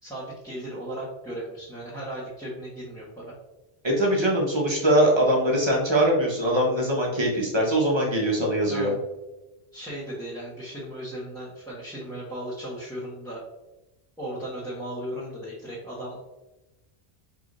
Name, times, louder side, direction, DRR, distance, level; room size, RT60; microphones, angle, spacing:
voice 1, 0.0-3.3 8.7-9.0 9.7-13.4 14.2-16.2, right 1 dB, 5° left, -9 dB, 1.1 m, -36 dB
voice 2, 3.8-8.9, right 1 dB, 25° right, -2 dB, 1.1 m, -22 dB
4.8 x 3.6 x 2.5 m, 1.0 s
omnidirectional pair, 1.1 m